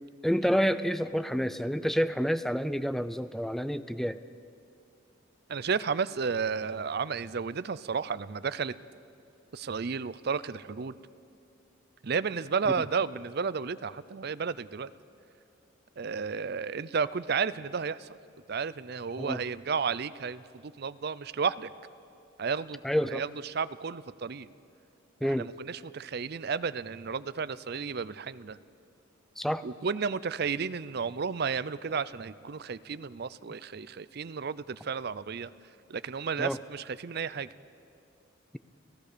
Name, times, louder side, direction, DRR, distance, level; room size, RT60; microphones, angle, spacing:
voice 1, 0.2-4.2 19.2-19.4 22.8-23.2 25.2-25.5 29.4-29.6 36.4-36.6, equal, ahead, 13 dB, 0.5 m, -28 dB
voice 2, 5.5-8.8 9.5-11.0 12.0-14.9 16.0-18.1 18.5-21.7 22.4-24.5 25.2-28.6 29.6-35.5 35.9-37.5, right 5 dB, 50° right, 16 dB, 0.5 m, -32 dB
30.0 x 15.5 x 6.8 m, 2.5 s
head